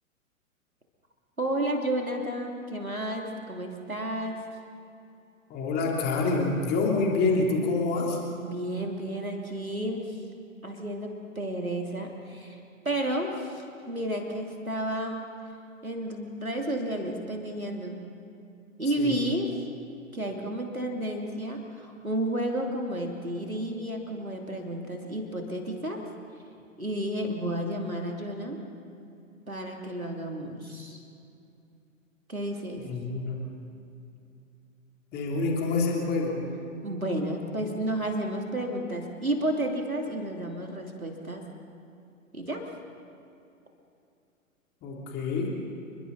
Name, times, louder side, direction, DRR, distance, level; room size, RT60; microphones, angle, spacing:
voice 1, 1.4-4.4 8.4-10.2 10.6-12.6 12.8-15.3 15.8-18.0 18.8-19.6 20.1-26.0 26.8-28.6 29.5-31.0 32.3-32.8 36.8-41.4 42.3-42.6, right 1 dB, 90° right, 1 dB, 2.9 m, -31 dB
voice 2, 5.5-8.2 19.0-19.2 32.8-33.4 35.1-36.5 44.8-45.5, left 3 dB, 25° left, -1 dB, 3.4 m, -27 dB
29.5 x 22.5 x 4.1 m, 2.7 s
figure-of-eight pair, 110°, 41 cm